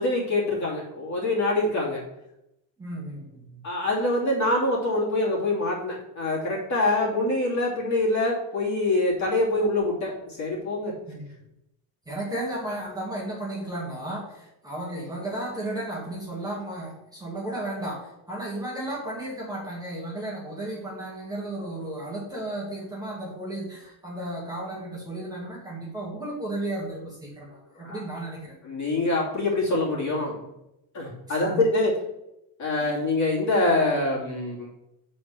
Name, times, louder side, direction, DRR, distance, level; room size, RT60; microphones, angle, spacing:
voice 1, 0.0-2.0 3.6-10.9 27.8-28.0 28.6-30.4 30.9-31.9 32.6-34.7, left 2 dB, 40° left, -3 dB, 2.8 m, -25 dB
voice 2, 2.8-3.6 11.1-11.3 12.1-28.6 31.3-31.5 32.8-33.0, right 1 dB, 10° right, -5 dB, 1.6 m, -34 dB
7.3 x 4.3 x 6.2 m, 0.86 s
cardioid pair, 155°, 44 cm